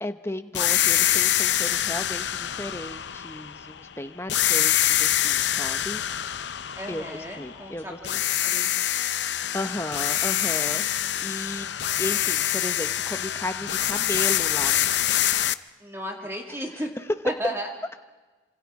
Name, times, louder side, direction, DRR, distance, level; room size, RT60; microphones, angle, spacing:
voice 1, 0.0-6.1 6.9-8.0 9.3-11.7 12.0-15.3, left 1 dB, 15° left, 8 dB, 0.8 m, -35 dB
sound 1, 0.5-3.8 4.3-7.7 8.0-15.5, left 12 dB, 70° left, 0.6 m, -25 dB
voice 2, 6.7-8.9 15.8-16.9 17.2-17.7, equal, 15° right, 1 dB, 2.4 m, -34 dB
27.0 x 26.5 x 4.8 m, 1.3 s
head